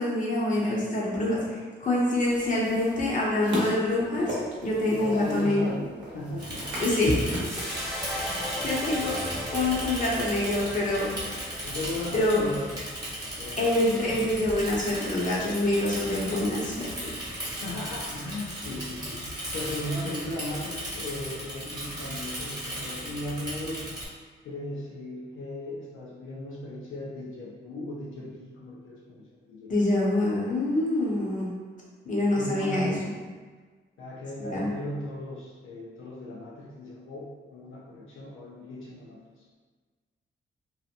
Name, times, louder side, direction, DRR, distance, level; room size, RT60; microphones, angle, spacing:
voice 1, 0.0-4.4 4.6-5.8 6.8-7.3 7.6-7.7 8.2-11.1 12.1-12.5 13.6-16.9 29.7-31.5 32.1-32.9 34.5-34.7, left 1 dB, 40° left, -5 dB, 0.7 m, -26 dB
sound 1, 2.2-9.8, equal, 70° right, 0.7 m, -38 dB
voice 2, 4.9-7.0 11.6-12.8 13.4-13.8 17.6-23.9 24.4-29.7 31.1-31.5 32.3-33.1 34.0-39.6, left 1 dB, 80° left, -5 dB, 0.5 m, -37 dB
Bicycle / Mechanisms, 6.4-24.1, equal, 20° right, 1.0 m, -36 dB
sound 2, 7.4-13.8, equal, ahead, 0.5 m, -37 dB
2.7 x 2.0 x 2.5 m, 1.4 s
wide cardioid pair, 120°, 20 cm